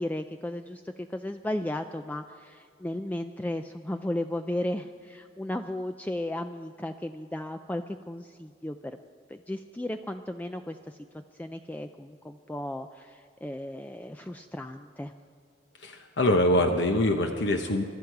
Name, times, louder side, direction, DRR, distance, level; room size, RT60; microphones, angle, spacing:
voice 1, 0.0-8.8 9.3-11.0 11.4-15.1, left 1 dB, 10° left, 7 dB, 0.3 m, -35 dB
voice 2, 15.8-17.8, left 1 dB, 75° left, 4 dB, 0.9 m, -24 dB
23.5 x 12.0 x 4.7 m, 2.3 s
head